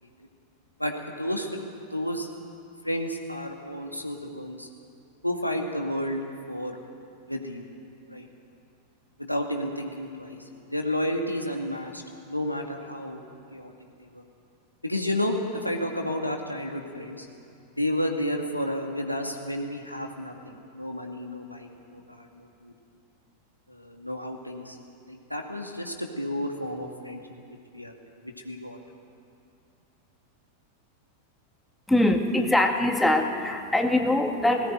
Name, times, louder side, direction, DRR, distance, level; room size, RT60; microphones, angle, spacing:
voice 1, 0.8-1.5 1.8-2.3 2.8-4.7 5.2-6.8 7.3-7.7 8.1-8.3 9.2-10.4 10.7-12.0 12.3-13.2 13.5-13.7 14.0-14.2 14.8-17.3 17.8-22.7 23.7-24.8 25.1-27.2 27.7-28.8, left 1 dB, 90° left, 2 dB, 2.2 m, -31 dB
voice 2, 31.9-34.7, left 1 dB, 5° left, 3 dB, 1.9 m, -23 dB
19.0 x 18.5 x 9.3 m, 2.5 s
figure-of-eight pair, 90°, 0 cm